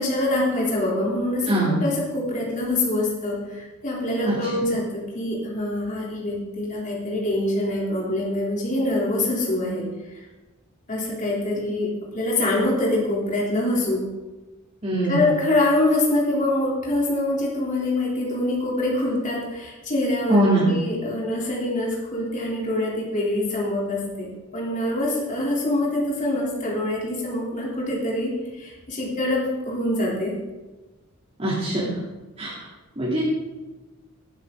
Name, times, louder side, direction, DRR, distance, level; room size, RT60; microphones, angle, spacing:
voice 1, 0.0-1.5 1.8-9.9 10.9-14.0 15.0-30.3, left 1 dB, 35° left, -4 dB, 3.5 m, -25 dB
voice 2, 1.5-1.8 4.2-4.3 14.8-15.3 20.3-20.7 31.4-31.9 32.4-32.5 33.0-33.2, right 1 dB, 30° right, -9 dB, 3.0 m, -21 dB
18.5 x 9.1 x 3.9 m, 1.2 s
head